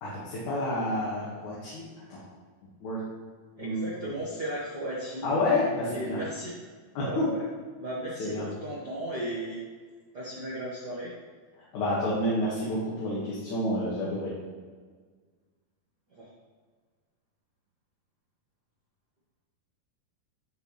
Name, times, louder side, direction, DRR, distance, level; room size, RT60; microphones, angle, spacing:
voice 1, 0.0-1.8 2.1-2.2 2.8-3.0 3.6-3.9 5.2-6.2 6.9-7.3 8.2-8.5 11.7-14.3, left 1 dB, 60° left, -7 dB, 2.8 m, -29 dB
voice 2, 3.6-5.3 5.8-6.6 6.9-7.5 7.8-9.6 10.1-11.1 16.1-16.3, right 1 dB, 70° right, -7 dB, 0.9 m, -35 dB
12.5 x 4.5 x 3.1 m, 1.5 s
omnidirectional pair, 4.3 m